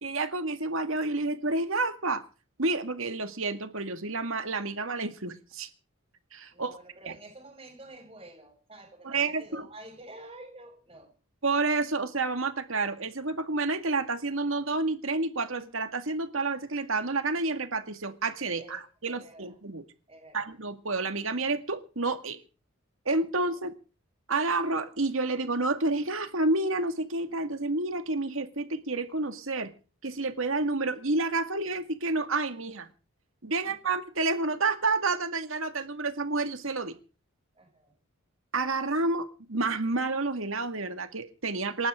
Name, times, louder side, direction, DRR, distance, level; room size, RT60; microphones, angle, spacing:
voice 1, 0.0-2.2 2.6-5.7 6.3-6.8 9.0-9.7 11.4-19.8 20.3-22.4 23.1-23.7 24.3-29.7 30.0-32.9 33.4-36.9 38.5-41.9, right 3 dB, 70° right, 2.1 m, -29 dB
voice 2, 6.5-11.1 18.6-19.6 20.1-20.5 33.6-33.9 37.5-37.9, right 1 dB, 25° right, 7.4 m, -49 dB
28.0 x 12.0 x 3.8 m
head